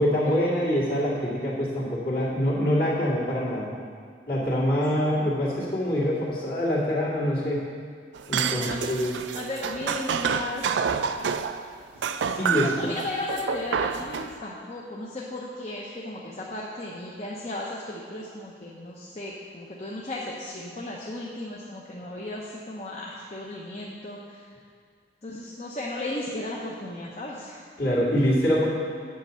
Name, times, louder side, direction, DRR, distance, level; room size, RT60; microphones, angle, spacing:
voice 1, 0.0-3.7 4.3-7.6 8.3-9.1 12.3-12.9 27.8-28.7, equal, 55° left, -6 dB, 2.2 m, -25 dB
sound 1, 8.1-11.6 12.0-14.3, right 6 dB, 85° right, 0.4 m, -28 dB
voice 2, 8.4-9.0 9.3-10.8 12.6-24.4 25.2-27.6, left 2 dB, 35° left, -4 dB, 0.8 m, -35 dB
8.7 x 5.3 x 6.9 m, 2.1 s
head